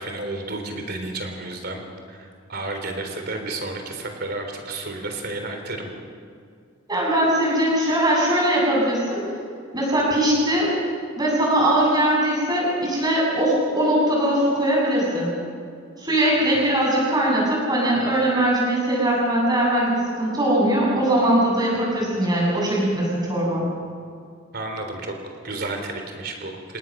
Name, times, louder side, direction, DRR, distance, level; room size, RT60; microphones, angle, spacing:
voice 1, 0.0-1.8 2.1-5.9 16.5-16.6 24.5-26.8, right 2 dB, 50° right, 4 dB, 3.6 m, -32 dB
voice 2, 6.9-9.3 9.7-10.7 11.2-15.3 16.0-23.7, right 1 dB, 20° right, -4 dB, 8.0 m, -21 dB
28.5 x 18.5 x 6.5 m, 2.3 s
head